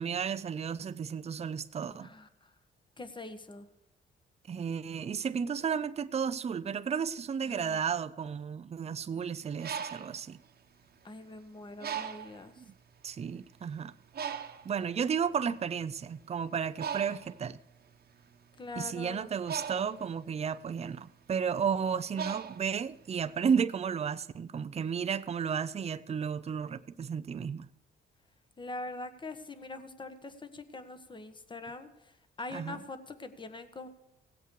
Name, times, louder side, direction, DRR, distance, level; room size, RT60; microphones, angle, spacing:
voice 1, 0.0-2.1 4.5-10.4 12.6-12.7 13.0-13.9 14.6-17.6 18.7-27.7 32.5-32.8, right 7 dB, 30° right, 0.6 m, -33 dB
voice 2, 3.0-3.7 7.4-7.8 11.0-12.5 18.6-19.3 28.6-31.9 32.4-33.9, left 3 dB, 25° left, 1.3 m, -43 dB
Bird, 9.4-11.3 11.8-12.5 13.2-13.3 13.6-23.3, right 7 dB, 50° right, 1.2 m, -40 dB
17.5 x 8.1 x 4.7 m
cardioid pair, 90°, 20 cm